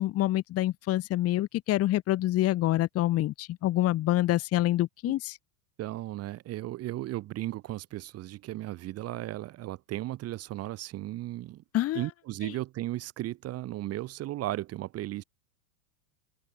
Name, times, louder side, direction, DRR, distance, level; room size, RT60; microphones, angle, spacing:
voice 1, 0.0-5.4 11.7-12.0, left 15 dB, 30° left, 1.5 m, -26 dB
voice 2, 5.8-11.6 11.9-15.2, right 15 dB, 30° right, 1.4 m, -35 dB
open air
supercardioid pair, 140°, 49 cm